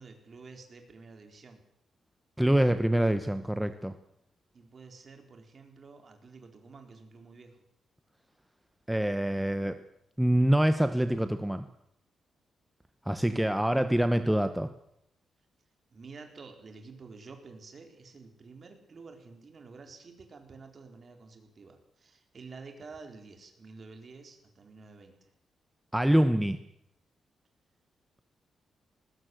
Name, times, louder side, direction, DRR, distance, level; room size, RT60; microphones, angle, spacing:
voice 1, 0.0-1.6 4.5-7.6 15.9-25.3, right 4 dB, 40° right, 5 dB, 4.4 m, -50 dB
voice 2, 2.4-3.9 8.9-9.8 10.2-11.6 13.1-14.7 25.9-26.6, right 1 dB, 5° right, 9 dB, 1.0 m, -25 dB
20.0 x 19.5 x 7.9 m, 0.75 s
cardioid pair, 130°, 0 cm